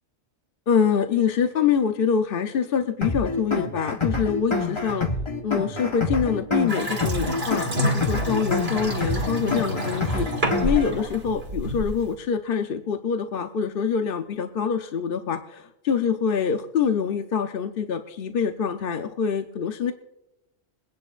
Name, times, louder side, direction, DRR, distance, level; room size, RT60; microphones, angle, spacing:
voice 1, 0.7-5.1 5.4-19.9, left 7 dB, 60° left, 6 dB, 0.8 m, -25 dB
sound 1, 3.0-11.0, left 3 dB, 25° left, 1.2 m, -27 dB
Water tap faucet / Sink (filling or washing) / Bathtub (filling or washing), 6.7-12.1, equal, 65° right, 2.1 m, -28 dB
23.0 x 10.5 x 2.5 m, 0.89 s
omnidirectional pair, 1.2 m